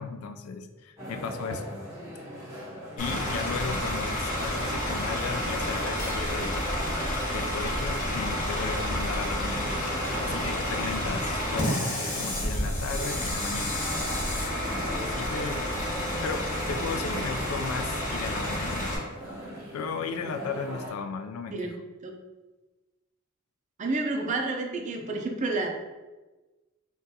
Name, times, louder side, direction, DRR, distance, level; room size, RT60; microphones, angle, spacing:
voice 1, 0.0-1.6 3.0-6.7 7.3-9.7 10.2-13.8 15.0-15.6 16.2-18.9 19.7-21.7, left 4 dB, 85° left, 7 dB, 0.3 m, -35 dB
sound 1, 1.0-20.9, equal, 15° right, 1.1 m, -39 dB
Bus / Idling, 3.0-19.0, left 1 dB, 40° left, 0.8 m, -30 dB
voice 2, 23.8-25.7, right 3 dB, 35° right, 2 dB, 0.4 m, -29 dB
3.8 x 2.3 x 2.7 m, 1.2 s
head